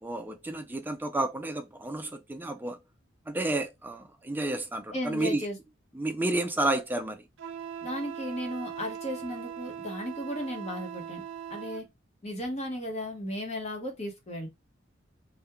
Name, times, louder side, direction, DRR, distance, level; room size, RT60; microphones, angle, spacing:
voice 1, 0.0-2.8 3.3-5.5 5.9-7.3, right 2 dB, 10° right, 0.3 m, -31 dB
voice 2, 4.9-5.6 7.8-11.2 11.5-11.9 12.2-14.5, equal, 35° left, 0.9 m, -35 dB
Wind instrument woodwind instrument, 7.4-11.9, right 8 dB, 80° right, 0.5 m, -40 dB
3.5 x 2.1 x 2.9 m
head